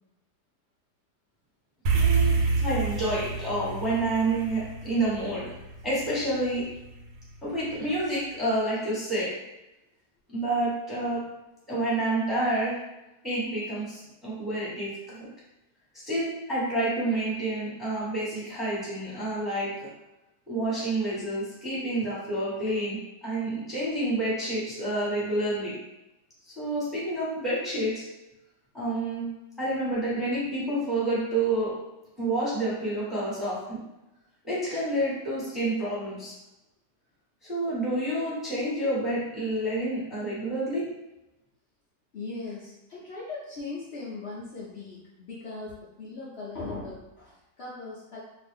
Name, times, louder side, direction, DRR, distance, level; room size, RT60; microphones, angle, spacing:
voice 1, 1.9-5.5 5.8-6.7 7.4-9.3 10.3-11.2 11.7-12.8 13.2-15.3 16.0-19.7 20.5-25.8 26.5-28.0 28.7-29.3 29.6-31.7 32.2-33.8 34.4-36.3 37.4-40.9, right 1 dB, ahead, -8 dB, 1.0 m, -29 dB
sound 1, 1.9-6.4, right 4 dB, 90° right, 1.3 m, -27 dB
voice 2, 42.1-48.2, left 3 dB, 80° left, -7 dB, 0.5 m, -39 dB
2.8 x 2.5 x 3.4 m, 0.93 s
omnidirectional pair, 1.9 m